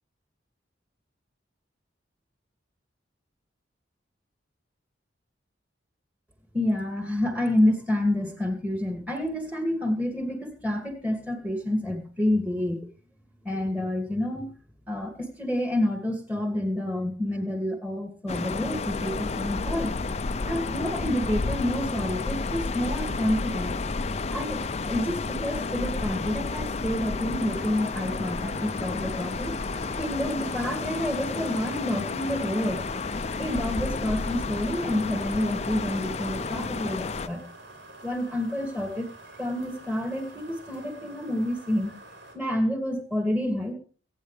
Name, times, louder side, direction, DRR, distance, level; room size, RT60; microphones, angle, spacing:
voice 1, 6.5-12.9 13.4-14.5 14.9-19.9 20.5-23.8 24.3-29.5 30.0-32.8 33.4-37.5 38.0-39.1 39.4-42.0 42.3-43.7, left 1 dB, 10° right, 4 dB, 2.5 m, -28 dB
sound 1, 18.3-37.3, left 3 dB, 35° left, 0.5 m, -31 dB
sound 2, 27.5-42.4, right 2 dB, 70° right, 4.4 m, -48 dB
23.5 x 9.5 x 3.4 m, 0.40 s
head